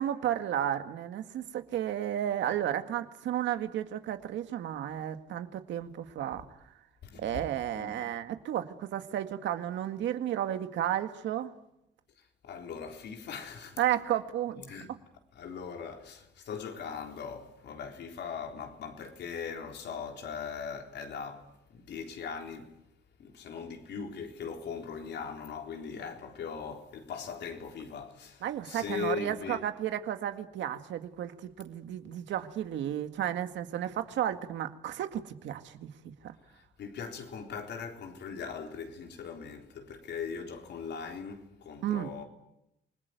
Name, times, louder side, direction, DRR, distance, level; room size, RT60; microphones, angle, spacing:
voice 1, 0.0-6.4 7.2-11.5 13.8-14.6 28.4-35.9 36.2-36.3 41.8-42.1, right 11 dB, 80° right, 2.0 m, -33 dB
voice 2, 7.0-7.4 7.7-8.0 12.4-13.8 14.7-14.9 15.3-22.7 23.2-29.6 36.8-42.2, left 6 dB, 70° left, 4.0 m, -40 dB
28.0 x 20.5 x 9.4 m
cardioid pair, 120°, 19 cm